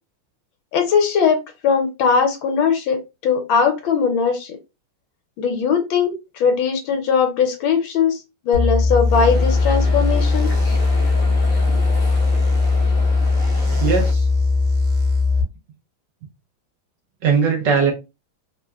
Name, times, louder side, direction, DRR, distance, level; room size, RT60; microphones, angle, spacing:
voice 1, 0.7-1.4 1.6-4.6 5.4-8.2 8.4-10.5 11.7-11.8, left 6 dB, 75° left, 1.4 m, -19 dB
sound 1, 8.5-15.4, left 3 dB, 90° right, 1.6 m, -18 dB
sound 2, 9.1-14.1, equal, 40° left, 1.0 m, -33 dB
voice 2, 13.7-14.3 17.2-17.9, right 6 dB, 70° right, 1.1 m, -19 dB
3.7 x 2.1 x 2.2 m
omnidirectional pair, 2.3 m